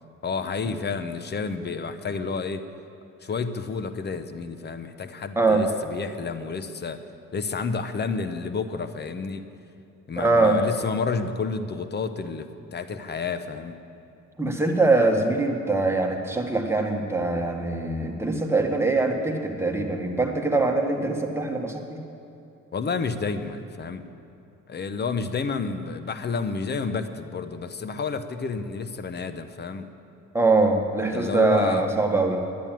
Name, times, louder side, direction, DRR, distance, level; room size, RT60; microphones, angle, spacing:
voice 1, 0.2-2.6 3.2-7.0 7.3-9.4 10.1-13.8 22.7-24.0 24.7-29.9 31.1-31.9, left 5 dB, 35° left, 10 dB, 0.9 m, -30 dB
voice 2, 10.2-10.6 14.4-22.0 30.3-32.4, right 3 dB, 10° right, 2 dB, 1.6 m, -23 dB
11.0 x 10.5 x 9.1 m, 2.7 s
cardioid pair, 90°, 30 cm